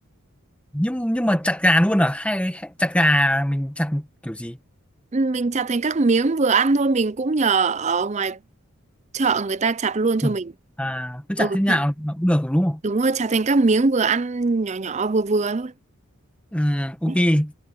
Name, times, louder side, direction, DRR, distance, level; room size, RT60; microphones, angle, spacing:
voice 1, 0.7-4.6 10.2-10.3 10.8-12.8 16.5-17.5, equal, 5° left, 1.3 m, -22 dB
voice 2, 5.1-8.4 9.1-10.5 11.4-11.8 12.8-15.7 17.1-17.2, right 3 dB, 30° right, 0.5 m, -21 dB
head